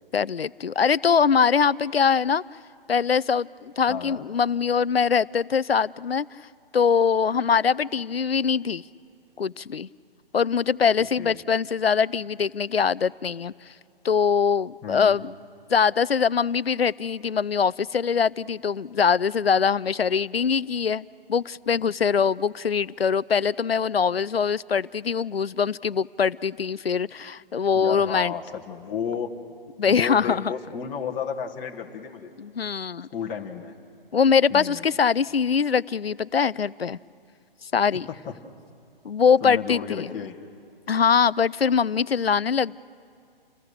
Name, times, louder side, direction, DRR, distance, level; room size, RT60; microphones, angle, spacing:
voice 1, 0.1-2.4 2.9-6.3 6.7-8.8 9.4-9.9 10.3-13.5 14.0-15.3 15.7-28.3 29.8-30.5 32.4-33.1 34.1-37.0 37.6-38.1 39.0-40.1 40.9-42.8, left 6 dB, 85° left, 20 dB, 0.5 m, -23 dB
voice 2, 3.9-4.3 11.2-11.4 14.8-15.2 27.7-29.3 29.9-32.3 33.1-33.7 34.5-34.8 37.9-38.0 38.2-38.3 39.4-40.4, left 7 dB, 15° left, -1 dB, 1.4 m, -32 dB
28.5 x 20.0 x 6.7 m, 2.5 s
figure-of-eight pair, 135°, 30 cm